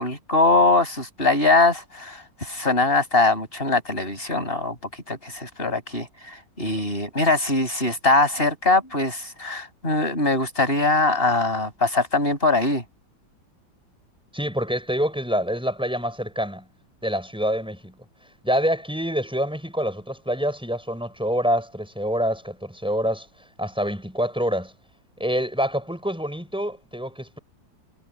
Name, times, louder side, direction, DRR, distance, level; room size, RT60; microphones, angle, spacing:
voice 1, 0.0-4.8 5.1-12.8, left 2 dB, 25° left, 7.5 m, -22 dB
voice 2, 14.3-16.7 17.0-17.9 18.4-23.3 23.6-24.7 25.2-27.4, equal, ahead, 7.2 m, -26 dB
omnidirectional pair, 2.1 m